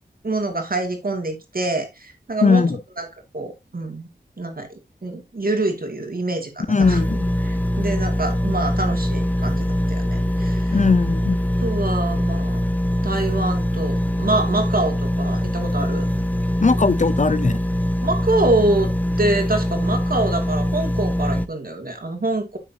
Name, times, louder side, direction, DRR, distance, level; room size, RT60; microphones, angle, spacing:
voice 1, 0.2-2.6 3.0-3.1 3.3-4.1 4.4-7.0 7.4-10.8 11.6-12.6 13.0-16.1 18.0-18.9 19.2-22.6, right 2 dB, 55° right, 2.4 m, -25 dB
voice 2, 2.4-2.8 6.7-7.3 10.7-11.4 16.6-17.6, left 4 dB, 45° left, 0.6 m, -18 dB
sound 1, 6.8-21.5, equal, 10° left, 0.8 m, -23 dB
10.5 x 6.3 x 2.8 m
wide cardioid pair, 65°, 17 cm